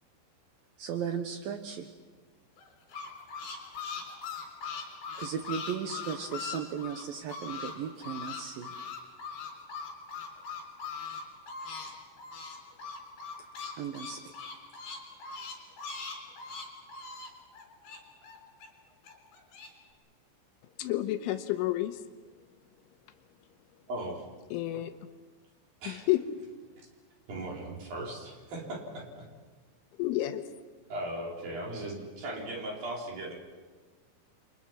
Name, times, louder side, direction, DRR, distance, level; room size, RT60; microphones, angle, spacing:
voice 1, 0.8-1.9 5.2-8.7 13.8-14.3, right 7 dB, 85° right, 2.0 m, -36 dB
sound 1, 2.6-7.7 8.0-11.9 12.2-18.7 19.0-19.7, left 5 dB, 50° left, 5.4 m, -40 dB
voice 2, 20.8-22.0 24.5-24.9 25.9-26.2 30.0-30.5, left 15 dB, 80° left, 3.3 m, -30 dB
voice 3, 23.9-24.3 25.8-26.1 27.3-29.3 30.9-33.3, right 1 dB, 45° right, 5.9 m, -38 dB
29.5 x 24.5 x 6.0 m
omnidirectional pair, 5.9 m